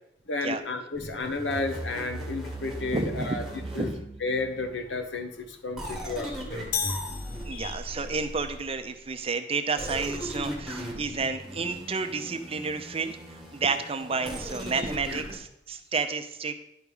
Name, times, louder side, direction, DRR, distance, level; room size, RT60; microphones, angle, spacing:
voice 1, 0.3-3.4 3.7-3.9 4.2-6.7 7.5-7.7, left 3 dB, 75° left, 5 dB, 1.2 m, -32 dB
sound 1, 0.9-4.7 5.8-8.8 9.8-15.4, equal, ahead, 1.8 m, -38 dB
voice 2, 2.9-4.0 7.4-16.5, right 4 dB, 30° right, 7 dB, 0.7 m, -31 dB
sound 2, 6.7-8.1, left 7 dB, 55° left, 0.7 m, -33 dB
10.5 x 4.8 x 5.4 m, 0.76 s
head